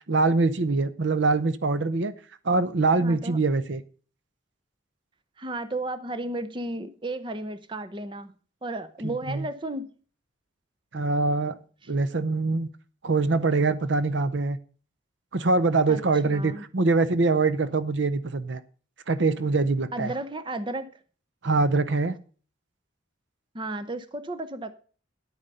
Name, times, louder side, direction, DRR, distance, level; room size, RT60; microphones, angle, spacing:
voice 1, 0.1-2.1 2.4-3.8 9.0-9.5 10.9-11.6 11.9-12.7 13.0-14.6 15.3-18.6 19.1-20.1 21.4-22.2, right 3 dB, 65° right, 0.7 m, -24 dB
voice 2, 3.0-3.4 5.4-8.3 8.6-9.9 15.9-16.0 16.3-16.6 19.9-20.9 23.5-24.7, right 2 dB, 25° right, 0.7 m, -33 dB
10.5 x 8.8 x 5.5 m
head